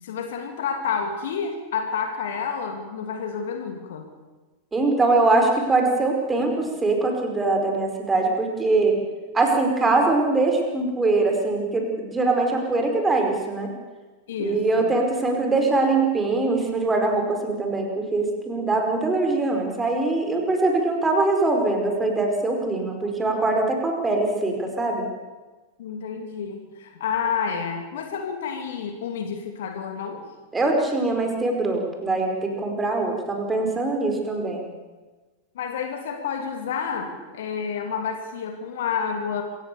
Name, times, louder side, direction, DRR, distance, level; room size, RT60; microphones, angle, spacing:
voice 1, 0.0-4.1 14.3-14.9 25.8-30.2 35.5-39.4, left 6 dB, 60° left, 5 dB, 2.7 m, -29 dB
voice 2, 4.7-9.0 9.3-13.7 14.4-25.1 30.5-34.7, right 2 dB, 15° right, 3 dB, 4.9 m, -22 dB
27.0 x 16.0 x 7.0 m, 1.2 s
figure-of-eight pair, 90°, 0 cm